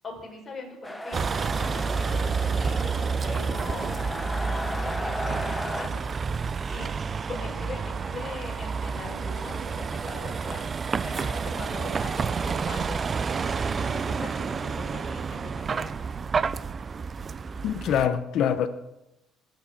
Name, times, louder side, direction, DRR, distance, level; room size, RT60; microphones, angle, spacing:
voice 1, 0.0-6.0 6.7-6.9 7.3-10.7 11.0-13.0 13.3-15.9, left 3 dB, 20° left, -1 dB, 4.5 m, -41 dB
sound 1, 0.8-5.9, left 1 dB, 5° left, 1.0 m, -36 dB
Vehicle, 1.1-18.1, right 5 dB, 30° right, 0.4 m, -29 dB
voice 2, 17.6-18.7, left 9 dB, 60° left, 9 dB, 1.0 m, -24 dB
20.0 x 7.3 x 7.3 m, 0.91 s
cardioid pair, 135°, 0 cm